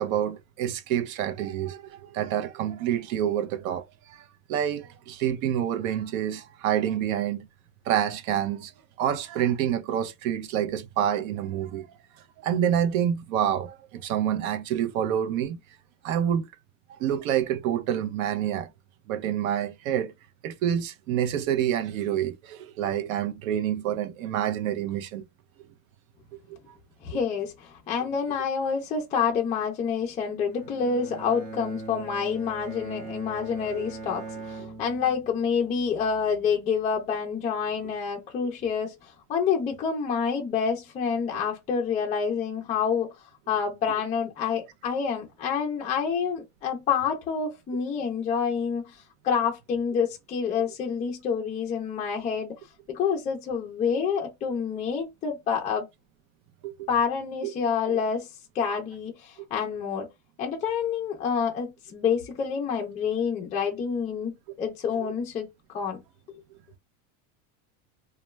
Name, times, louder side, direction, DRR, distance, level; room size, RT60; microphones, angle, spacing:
voice 1, 0.0-7.5 7.9-8.7 9.0-11.9 12.4-15.6 16.0-16.5 16.9-18.7 19.1-20.1 20.4-25.2 33.7-33.8 56.6-56.9 57.4-57.5 57.9-58.0, right 10 dB, 75° right, 0.6 m, -27 dB
voice 2, 27.0-43.1 43.5-49.0 49.2-52.5 52.9-55.9 56.9-58.3 58.5-60.1 60.4-64.3 64.6-65.5 65.7-66.0, left 6 dB, 20° left, 0.4 m, -28 dB
Bowed string instrument, 30.4-35.7, right 3 dB, 35° right, 1.1 m, -41 dB
2.2 x 2.2 x 3.0 m
supercardioid pair, 150°, 42 cm